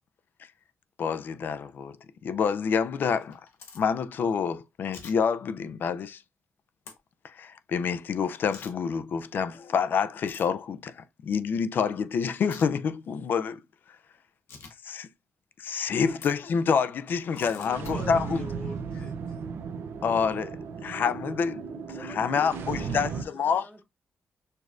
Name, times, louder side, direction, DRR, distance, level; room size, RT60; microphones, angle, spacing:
voice 1, 1.0-2.0 2.2-3.4 3.7-6.2 7.2-13.6 14.8-15.1 15.6-18.4 20.0-23.1 23.3-23.7, left 6 dB, 55° left, 0.3 m, -28 dB
sound 1, 3.2-3.8 4.9-5.1 6.9-7.0 8.5-8.7 10.2-10.5 12.4-12.7 14.5-14.7 16.1-16.3 17.4-17.9, left 5 dB, 90° left, 0.9 m, -45 dB
voice 2, 17.3-19.4, left 2 dB, 40° left, 1.0 m, -41 dB
sound 2, 17.7-23.2, right 5 dB, 80° right, 0.5 m, -35 dB
voice 3, 21.9-23.8, equal, 5° right, 0.7 m, -45 dB
6.5 x 2.4 x 2.4 m
wide cardioid pair, 155°, 4 cm